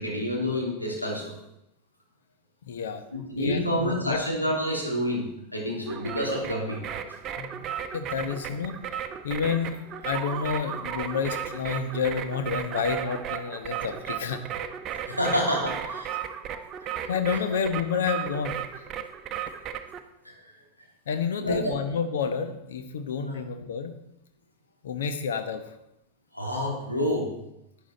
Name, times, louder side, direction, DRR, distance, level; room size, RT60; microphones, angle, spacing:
voice 1, 0.0-1.3 3.1-5.3 5.5-6.8 15.1-16.1 20.2-20.3 21.4-21.7 23.3-23.4 26.3-27.3, equal, 85° left, -2 dB, 3.1 m, -28 dB
voice 2, 2.7-3.0 3.4-4.2 7.4-8.8 9.2-14.5 17.1-18.8 21.1-23.9 24.8-25.6, left 6 dB, 60° left, 8 dB, 1.1 m, -29 dB
sound 1, 5.9-20.0, right 9 dB, 30° right, 0.8 m, -35 dB
11.5 x 9.4 x 4.2 m, 0.86 s
figure-of-eight pair, 90°, 0 cm